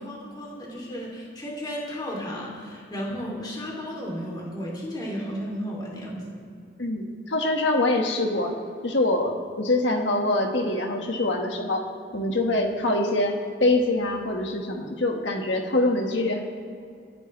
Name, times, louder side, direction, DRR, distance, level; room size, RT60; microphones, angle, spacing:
voice 1, 0.0-6.5, equal, 25° left, -3 dB, 2.9 m, -34 dB
voice 2, 6.8-8.5 8.8-11.8 12.1-13.4 13.6-16.4, left 2 dB, 70° left, 2 dB, 1.7 m, -24 dB
27.0 x 10.5 x 3.3 m, 2.4 s
head